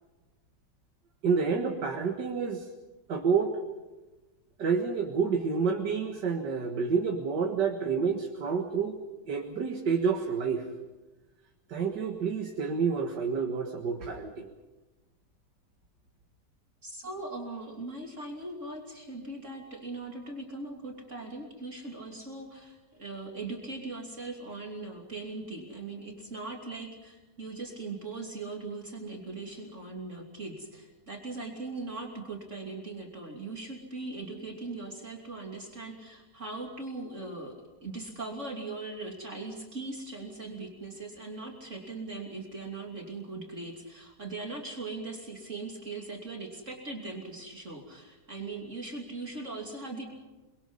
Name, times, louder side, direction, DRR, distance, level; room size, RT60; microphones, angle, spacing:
voice 1, 1.2-2.6 3.1-3.6 4.6-9.0 9.3-10.7 11.7-14.5, right 5 dB, 80° right, 2 dB, 2.3 m, -29 dB
voice 2, 16.8-37.5 37.8-50.0, right 3 dB, 45° right, 0 dB, 3.3 m, -40 dB
29.5 x 22.5 x 5.6 m, 1.2 s
omnidirectional pair, 1.8 m